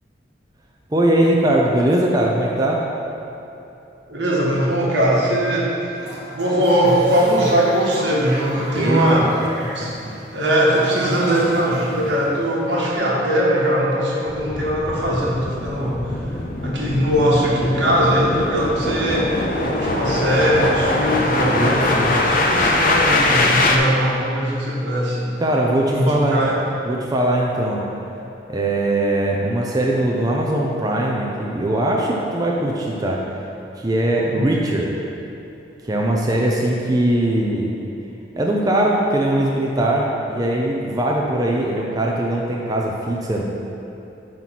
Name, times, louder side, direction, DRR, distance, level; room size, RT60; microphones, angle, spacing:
voice 1, 0.9-2.8 8.7-9.2 9.8-9.9 21.5-22.2 25.4-26.5 26.9-27.8 28.5-33.2 33.8-34.9 35.8-37.7 38.4-43.4, right 1 dB, 20° right, -2 dB, 0.6 m, -20 dB
voice 2, 4.1-5.7 6.3-9.9 10.3-16.2 16.6-19.3 19.6-25.3 25.9-26.6 34.2-34.4, equal, 85° right, -5 dB, 1.6 m, -20 dB
Toilet flush, 5.9-12.9, right 1 dB, 70° right, 1.4 m, -35 dB
sound 1, 14.3-23.8, left 2 dB, 50° left, 0.6 m, -22 dB
9.3 x 3.1 x 5.9 m, 3.0 s
head